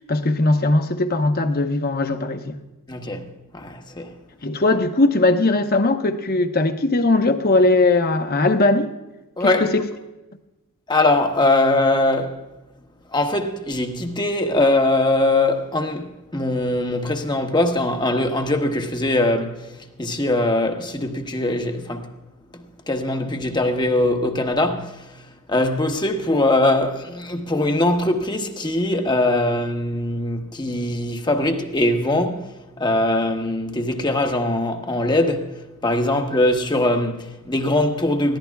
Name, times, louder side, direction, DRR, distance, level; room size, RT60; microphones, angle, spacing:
voice 1, 0.1-2.6 4.4-8.9 9.4-9.8, left 2 dB, 45° left, 0.9 m, -19 dB
voice 2, 2.9-3.3 3.5-4.1 9.4-9.7 10.9-12.4 13.1-16.1 16.3-19.7 20.0-22.1 22.9-25.0 25.5-32.5 32.8-35.5 35.8-38.4, left 2 dB, 20° left, 1.1 m, -21 dB
20.5 x 15.0 x 2.3 m
head